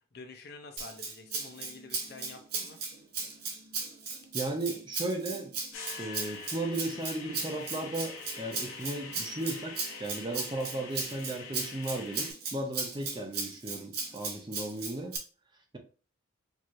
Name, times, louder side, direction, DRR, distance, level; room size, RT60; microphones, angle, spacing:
voice 1, 0.0-2.8, left 3 dB, 50° left, 0.6 m, -48 dB
Rattle (instrument), 0.8-15.2, right 4 dB, 45° right, 0.9 m, -37 dB
voice 2, 4.3-5.5 6.0-15.2, right 2 dB, 20° right, 0.5 m, -35 dB
sound 1, 5.7-12.3, left 5 dB, 85° left, 1.1 m, -45 dB
4.6 x 2.9 x 2.6 m
head